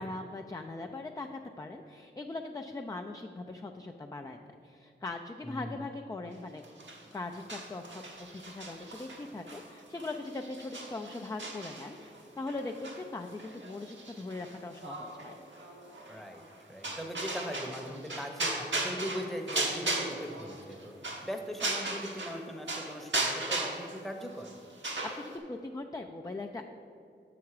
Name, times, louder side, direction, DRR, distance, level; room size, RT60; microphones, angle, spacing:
voice 1, 0.0-4.4 4.6-6.6 7.1-15.4 24.8-26.6, left 2 dB, 15° left, 4 dB, 0.4 m, -40 dB
voice 2, 5.4-5.8 16.1-20.9 21.2-24.5, equal, ahead, 4 dB, 0.9 m, -40 dB
sound 1, 6.6-22.4 22.7-25.4, right 2 dB, 70° right, 1.2 m, -37 dB
7.0 x 5.9 x 4.8 m, 2.6 s
cardioid pair, 55°, 20 cm